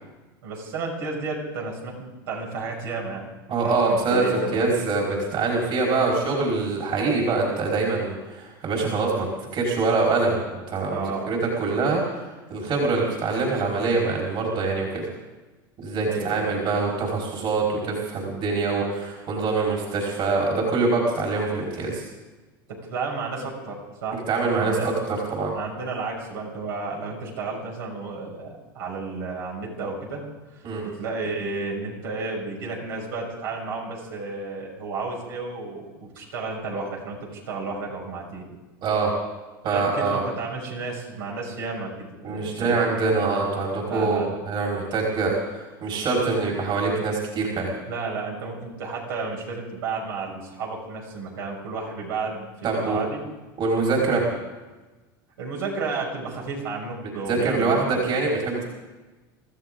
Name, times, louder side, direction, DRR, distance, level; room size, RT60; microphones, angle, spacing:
voice 1, 0.4-3.3 3.6-4.6 10.9-11.3 16.1-16.5 22.7-24.2 24.5-24.9 25.5-30.2 30.5-38.4 39.6-42.8 43.9-44.4 47.9-53.2 54.0-54.3 55.4-57.9, right 4 dB, 80° right, -2 dB, 6.5 m, -32 dB
voice 2, 3.5-9.3 9.5-12.0 12.5-15.1 15.8-22.0 24.1-25.5 30.6-30.8 38.8-39.1 39.6-40.2 42.2-47.7 52.6-53.0 53.6-54.2 57.3-58.6, right 3 dB, 45° right, -2 dB, 4.9 m, -24 dB
26.5 x 14.0 x 3.9 m, 1.2 s
hypercardioid pair, 95°, 12 cm